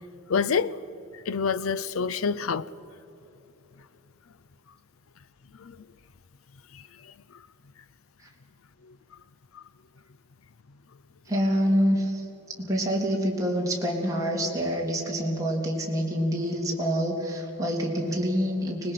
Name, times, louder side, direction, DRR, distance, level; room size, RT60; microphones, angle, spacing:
voice 1, 0.3-0.7 1.3-2.7 5.6-5.8, left 5 dB, 80° left, 0.6 m, -26 dB
voice 2, 11.3-12.2 12.6-18.9, equal, 15° right, 3.1 m, -26 dB
24.5 x 20.0 x 5.8 m
head